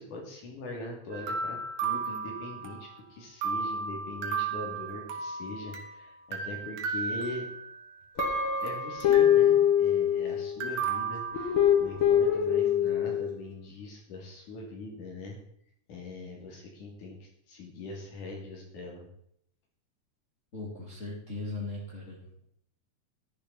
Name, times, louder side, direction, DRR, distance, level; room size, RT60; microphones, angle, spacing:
voice 1, 0.0-7.5 8.6-15.4 15.9-19.1, left 2 dB, 85° left, -1 dB, 4.3 m, -42 dB
sound 1, 1.1-3.0 3.4-5.9 6.3-7.8 8.2-9.5 10.6-12.0, right 5 dB, 65° right, 2.6 m, -34 dB
Guitar, 8.2-10.6 11.3-13.3, left 9 dB, 50° left, 2.2 m, -24 dB
voice 2, 20.5-22.4, left 2 dB, 25° left, -4 dB, 2.3 m, -38 dB
12.0 x 10.5 x 4.1 m, 0.69 s
omnidirectional pair, 3.5 m